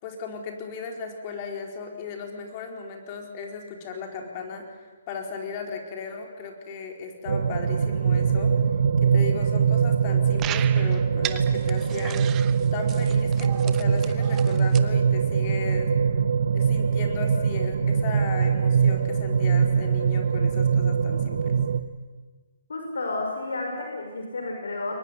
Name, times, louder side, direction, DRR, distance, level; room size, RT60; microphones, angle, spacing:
voice 1, 0.0-4.8 5.1-8.5 9.0-12.4 12.7-15.9 16.5-21.6, left 5 dB, 35° left, 3 dB, 4.4 m, -36 dB
sound 1, 7.3-21.8, right 6 dB, 65° right, 1.2 m, -22 dB
sound 2, 10.4-14.8, right 12 dB, 20° right, 1.0 m, -37 dB
voice 2, 22.7-24.9, left 2 dB, 85° left, 2 dB, 5.9 m, -31 dB
22.5 x 20.5 x 9.9 m, 1.4 s
hypercardioid pair, 150°, 0 cm